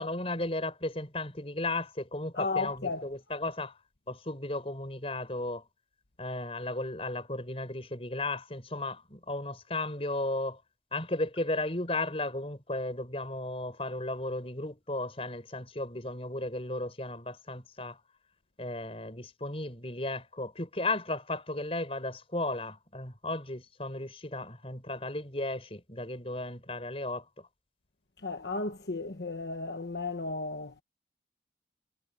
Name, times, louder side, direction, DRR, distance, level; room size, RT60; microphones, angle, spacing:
voice 1, 0.0-3.8 4.1-5.6 6.2-10.6 10.9-18.0 18.6-27.5, left 2 dB, 35° left, 5.6 m, -35 dB
voice 2, 2.4-3.0 28.2-30.8, left 3 dB, 70° left, 1.2 m, -34 dB
head